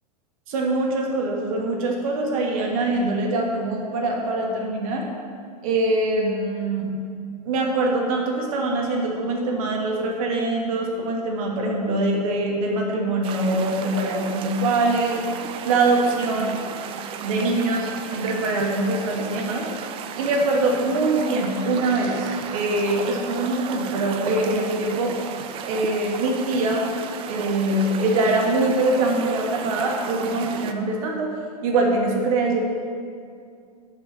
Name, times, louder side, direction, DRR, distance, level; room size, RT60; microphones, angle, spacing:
voice 1, 0.5-5.1 5.6-6.9 7.4-15.2 15.6-16.6 17.2-19.7 20.2-25.1 25.6-26.9 27.3-31.3 31.6-32.6, right 2 dB, 55° right, 0 dB, 1.7 m, -23 dB
sound 1, 13.2-30.7, right 7 dB, 25° right, 0.4 m, -35 dB
5.9 x 5.8 x 6.5 m, 2.3 s
hypercardioid pair, 115°, 21 cm